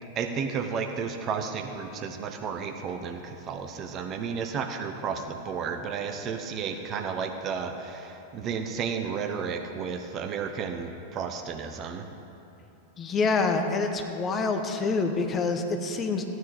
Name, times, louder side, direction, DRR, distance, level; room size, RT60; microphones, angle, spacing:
voice 1, 0.2-12.0, right 6 dB, 30° right, 5 dB, 0.9 m, -32 dB
voice 2, 13.0-16.2, left 4 dB, 25° left, 5 dB, 1.0 m, -26 dB
15.0 x 9.5 x 5.0 m, 2.8 s
figure-of-eight pair, 90°, 0 cm